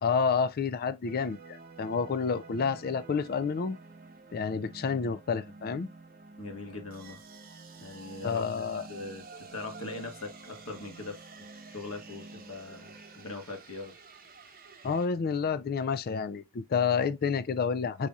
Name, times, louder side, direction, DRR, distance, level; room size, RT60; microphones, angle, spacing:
voice 1, 0.0-3.8 4.3-5.9 8.2-8.9 14.8-18.1, left 5 dB, 45° left, 0.4 m, -29 dB
sound 1, 1.0-15.1, right 3 dB, 45° right, 1.4 m, -49 dB
voice 2, 6.4-7.2 7.8-8.6 8.9-11.2 11.5-13.9, left 3 dB, 85° left, 1.6 m, -41 dB
4.8 x 4.1 x 2.3 m
head